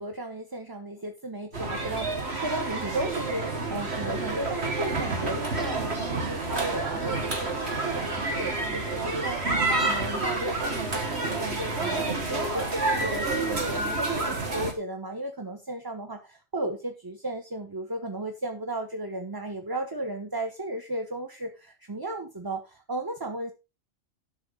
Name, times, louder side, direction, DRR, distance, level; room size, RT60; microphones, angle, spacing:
voice 1, 0.0-23.5, right 2 dB, 20° right, 4 dB, 1.2 m, -35 dB
sound 1, 1.5-14.7, right 2 dB, 55° right, 2.3 m, -29 dB
12.5 x 7.2 x 4.0 m, 0.28 s
omnidirectional pair, 1.3 m